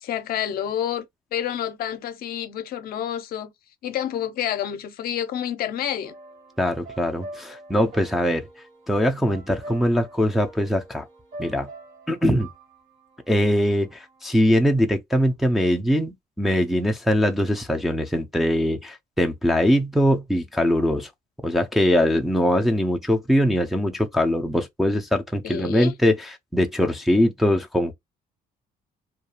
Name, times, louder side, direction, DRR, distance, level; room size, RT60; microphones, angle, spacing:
voice 1, 0.0-1.1 1.3-3.5 3.8-6.1 25.4-25.9, left 10 dB, 60° left, 0.5 m, -28 dB
sound 1, 6.0-14.3, right 1 dB, 55° right, 1.1 m, -44 dB
voice 2, 6.6-8.4 8.9-11.1 11.4-11.7 12.1-12.5 13.3-21.1 21.4-27.9, equal, ahead, 0.4 m, -22 dB
2.3 x 2.3 x 2.8 m
cardioid pair, 110°, 17 cm